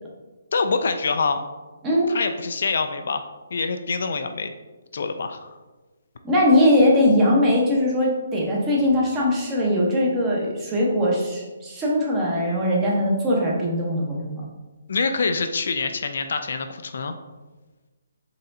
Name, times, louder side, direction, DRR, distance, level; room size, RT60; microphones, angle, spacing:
voice 1, 0.5-1.4 2.1-4.5 4.9-5.5 14.9-17.1, left 4 dB, 65° left, 8 dB, 0.3 m, -25 dB
voice 2, 6.2-14.4, left 1 dB, 15° right, -4 dB, 0.9 m, -20 dB
4.1 x 3.7 x 2.6 m, 1.2 s
hypercardioid pair, 155°, 0 cm